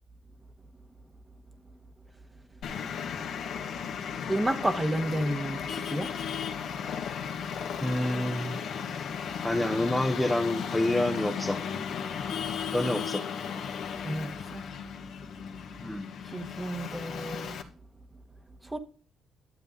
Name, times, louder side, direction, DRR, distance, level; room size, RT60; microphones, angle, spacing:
Traffic noise roadway noise, 2.6-17.6, left 7 dB, 75° left, 1.7 m, -35 dB
voice 1, 4.2-6.1 13.9-14.7 16.2-17.6 18.6-18.8, right 1 dB, 15° right, 1.4 m, -31 dB
voice 2, 7.8-8.8 9.4-11.6 12.7-13.3 15.8-16.1, left 1 dB, 5° left, 1.0 m, -28 dB
12.0 x 7.6 x 3.9 m
cardioid pair, 90°, 0 cm